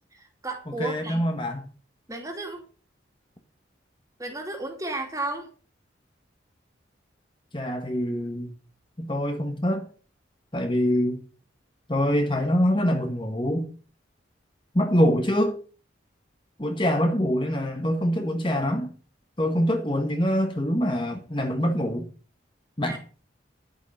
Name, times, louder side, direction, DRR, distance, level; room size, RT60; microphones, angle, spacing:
voice 1, 0.1-1.2 2.1-2.6 4.2-5.5 22.8-23.0, right 2 dB, 15° right, 2.7 m, -33 dB
voice 2, 0.8-1.6 7.5-8.5 9.0-9.9 10.5-11.2 11.9-13.7 14.7-15.6 16.6-18.9 19.4-22.0 22.8-23.0, equal, 25° left, 1.5 m, -24 dB
11.5 x 8.3 x 5.6 m
head